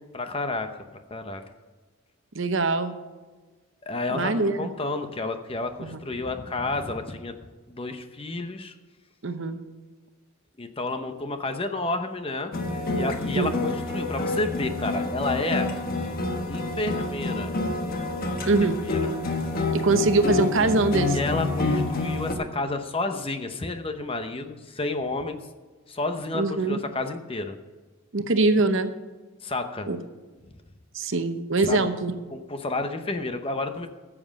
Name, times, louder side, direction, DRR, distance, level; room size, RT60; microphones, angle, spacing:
voice 1, 0.1-0.7 1.1-1.4 3.8-7.3 7.7-8.7 10.6-12.5 12.9-15.7 16.5-17.5 18.4-18.5 18.9-19.1 21.1-25.4 25.9-27.6 29.4-29.9 31.6-31.8 32.3-33.9, left 2 dB, 25° left, 7 dB, 0.8 m, -30 dB
voice 2, 2.3-2.9 4.1-4.7 5.8-6.0 9.2-9.6 13.3-13.5 18.5-18.8 19.7-21.2 26.3-26.8 28.1-28.9 29.9-30.0 30.9-32.1, right 3 dB, 60° right, 9 dB, 0.9 m, -23 dB
sound 1, 12.5-22.3, left 2 dB, 40° left, 1.3 m, -28 dB
14.0 x 7.5 x 6.4 m, 1.3 s
head